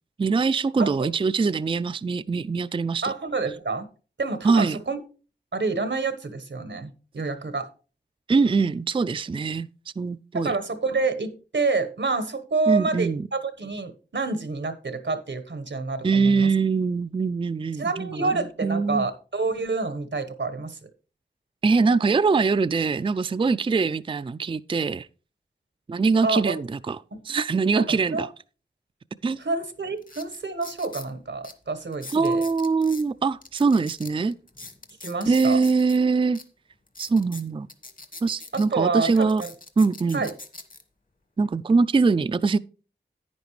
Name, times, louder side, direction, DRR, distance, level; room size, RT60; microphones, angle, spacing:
voice 1, 0.2-3.1 4.4-4.8 8.3-9.7 10.0-10.6 12.7-13.2 16.0-19.1 21.6-25.1 25.9-27.0 27.2-28.3 29.2-29.4 32.1-34.3 35.2-36.4 37.0-37.7 38.2-39.4 39.8-40.2 41.4-42.6, right 4 dB, 30° right, 0.3 m, -23 dB
voice 2, 3.0-3.9 4.2-5.0 5.5-7.7 10.3-16.5 17.8-20.8 26.2-26.5 27.7-28.3 29.4-32.4 35.0-35.6 38.5-39.5 40.1-40.3, right 3 dB, 85° right, 1.2 m, -28 dB
sound 1, 29.3-29.4 30.0-31.1 31.4-31.5 31.9-33.0 33.4-36.0 36.3-36.4 36.9-38.7 39.0-40.8 41.4-41.7, left 2 dB, 50° left, 1.4 m, -43 dB
10.5 x 9.5 x 3.2 m
wide cardioid pair, 40°, 19 cm